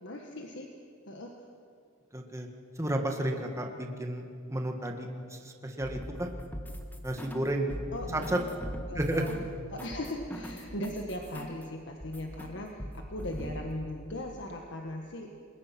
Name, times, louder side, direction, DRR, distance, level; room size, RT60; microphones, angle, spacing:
voice 1, 0.0-0.7 1.1-1.3 7.9-8.3 8.9-9.4 9.7-15.3, left 1 dB, 60° left, 2 dB, 1.6 m, -38 dB
voice 2, 2.1-2.5 2.8-4.2 4.5-6.3 7.0-7.7 8.1-8.4 9.0-9.2, right 1 dB, 15° right, 3 dB, 1.8 m, -32 dB
sound 1, 5.8-7.4 7.7-11.6 12.0-12.5 12.8-13.6, equal, 10° left, 1.8 m, -41 dB
28.5 x 21.0 x 6.0 m, 2.4 s
head